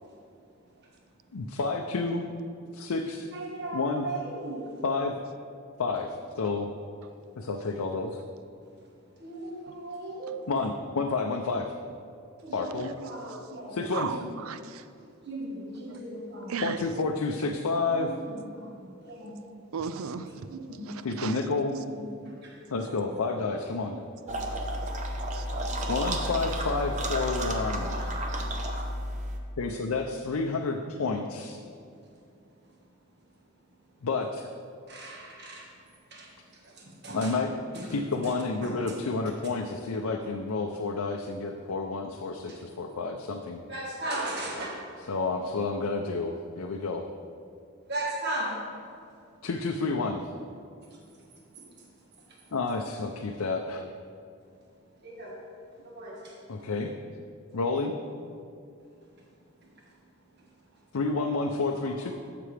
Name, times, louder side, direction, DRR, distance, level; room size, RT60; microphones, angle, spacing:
voice 1, 1.3-2.2 2.7-3.3 3.7-4.1 4.8-5.2 5.8-6.7 7.4-8.2 10.5-11.7 12.5-12.9 13.7-14.2 16.6-18.1 20.1-20.3 21.0-21.8 22.7-24.0 25.9-28.2 29.6-31.6 34.0-34.5 37.1-37.5 37.9-43.6 45.1-47.1 49.4-50.2 52.5-53.8 56.5-56.9 57.5-58.0 60.9-62.1, left 3 dB, 85° left, 2 dB, 0.5 m, -30 dB
voice 2, 3.3-4.8 9.2-10.4 12.4-14.3 15.2-16.7 17.8-19.4 20.5-21.0 21.6-22.6 22.9-23.2 25.7-25.8 34.9-35.7 36.1-37.4 37.7-37.9 38.2-39.0 42.5-42.6 43.7-44.8 47.9-48.6 50.9-51.0 51.8-51.9 52.3-52.5 55.0-55.4 55.8-56.4, right 1 dB, 50° right, -2 dB, 1.5 m, -38 dB
voice 3, 14.4-14.8 16.5-16.8 19.7-20.5 20.9-21.4 24.2-24.4 25.3-25.7, right 6 dB, 75° right, 11 dB, 0.4 m, -35 dB
sound 1, 24.3-29.4, right 1 dB, 35° right, 0.7 m, -31 dB
12.5 x 6.8 x 3.3 m, 2.5 s
head